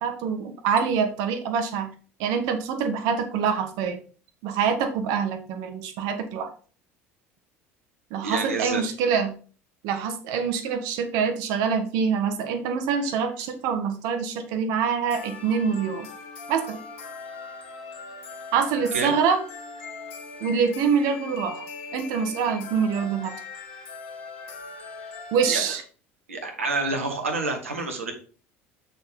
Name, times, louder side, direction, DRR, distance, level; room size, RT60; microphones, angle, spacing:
voice 1, 0.0-1.9 2.2-4.0 4.4-6.5 8.1-9.3 9.8-16.1 16.5-16.8 18.5-19.4 20.4-21.7 21.9-23.3 25.3-25.8, right 6 dB, 60° right, 6 dB, 1.4 m, -25 dB
voice 2, 8.2-8.8 18.9-19.1 25.5-25.7 26.3-28.1, right 3 dB, 80° right, 3 dB, 1.6 m, -28 dB
sound 1, 12.9-13.5 15.1-25.6, left 4 dB, 65° left, 1.5 m, -40 dB
6.9 x 6.1 x 3.6 m, 0.39 s
figure-of-eight pair, 65°, 7 cm